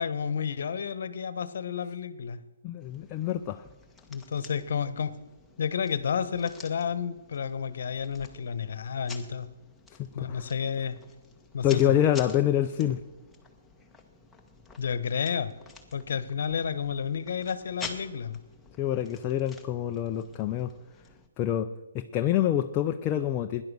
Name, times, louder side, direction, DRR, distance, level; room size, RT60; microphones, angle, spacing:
voice 1, 0.0-2.4 4.1-5.1 5.6-9.5 10.1-11.0 11.5-11.9 14.8-15.5 15.9-18.4, left 7 dB, 65° left, 14 dB, 1.2 m, -31 dB
voice 2, 2.6-3.6 10.0-10.4 11.6-13.0 18.8-20.7 21.4-23.6, left 11 dB, 30° left, 6 dB, 0.7 m, -26 dB
sound 1, 2.8-21.3, left 4 dB, 5° left, 1.6 m, -49 dB
17.0 x 11.0 x 6.3 m, 1.1 s
hypercardioid pair, 140°, 0 cm